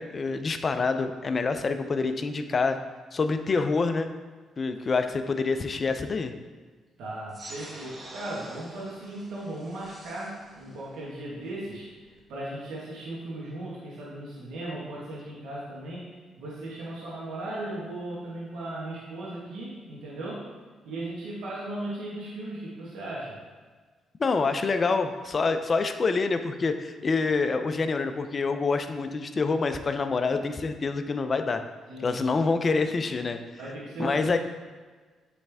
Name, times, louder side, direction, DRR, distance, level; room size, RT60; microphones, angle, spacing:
voice 1, 0.0-2.8 3.1-4.1 4.6-6.3 24.2-31.6 32.0-33.4 34.0-34.4, left 4 dB, 40° left, 8 dB, 0.4 m, -26 dB
voice 2, 7.0-20.5 20.8-23.4 31.9-32.4 33.6-34.4, right 1 dB, 80° right, -7 dB, 1.4 m, -37 dB
sound 1, 7.3-12.3, right 1 dB, 30° right, 1.0 m, -47 dB
8.4 x 3.3 x 3.5 m, 1.4 s
cardioid pair, 90°, 0 cm